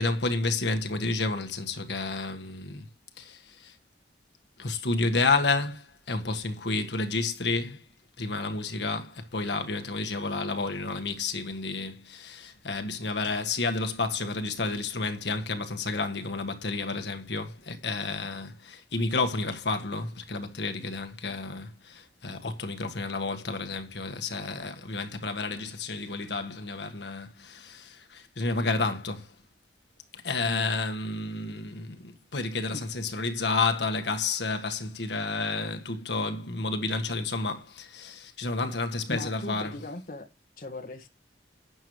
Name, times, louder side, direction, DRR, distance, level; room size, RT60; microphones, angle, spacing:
voice 1, 0.0-2.8 3.2-3.4 4.6-7.8 8.2-29.3 30.1-39.7, left 3 dB, 75° left, 1.6 m, -30 dB
voice 2, 39.1-40.3 40.6-41.1, left 1 dB, 50° left, 1.7 m, -38 dB
11.5 x 9.2 x 3.2 m
head